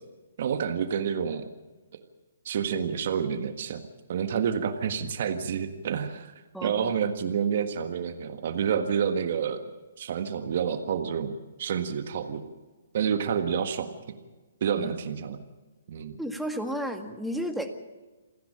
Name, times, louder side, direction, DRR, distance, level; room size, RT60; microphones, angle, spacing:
voice 1, 0.4-1.5 2.5-3.8 4.1-6.3 6.6-9.6 10.0-11.3 11.6-12.4 12.9-13.9 14.6-15.4 15.9-16.1, right 7 dB, 55° right, 8 dB, 1.6 m, -28 dB
voice 2, 6.5-6.9 14.7-14.9 16.2-17.7, equal, ahead, 4 dB, 1.9 m, -32 dB
28.0 x 10.5 x 8.8 m, 1.2 s
hypercardioid pair, 140°, 0 cm